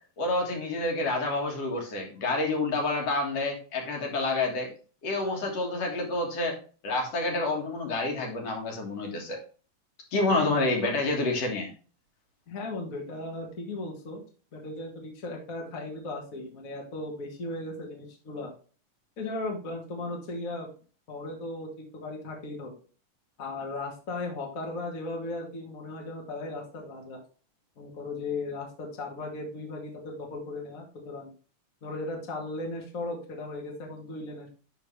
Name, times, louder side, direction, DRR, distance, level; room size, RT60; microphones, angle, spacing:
voice 1, 0.2-4.7 5.0-6.5 6.8-9.4 10.1-11.7, left 2 dB, 60° left, 1 dB, 2.7 m, -28 dB
voice 2, 10.3-10.7 12.5-14.2 14.5-18.5 19.2-20.7 21.1-22.7 23.4-27.2 27.8-31.3 31.8-34.5, left 2 dB, 35° left, 0 dB, 1.6 m, -36 dB
11.0 x 3.9 x 3.2 m, 0.38 s
omnidirectional pair, 3.3 m